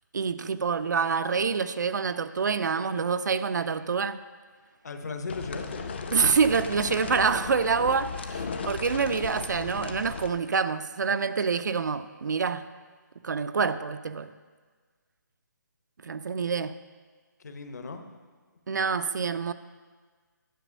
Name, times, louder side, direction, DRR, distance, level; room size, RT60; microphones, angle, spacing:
voice 1, 0.1-4.2 6.1-12.7 13.2-14.3 16.0-16.8 18.7-19.5, right 5 dB, 65° right, 13 dB, 0.4 m, -26 dB
voice 2, 4.8-5.8 17.4-18.0, left 4 dB, 55° left, 6 dB, 0.9 m, -36 dB
sound 1, 5.3-10.3, left 5 dB, 35° left, 0.5 m, -36 dB
10.0 x 5.0 x 6.3 m, 1.5 s
hypercardioid pair, 170°, 11 cm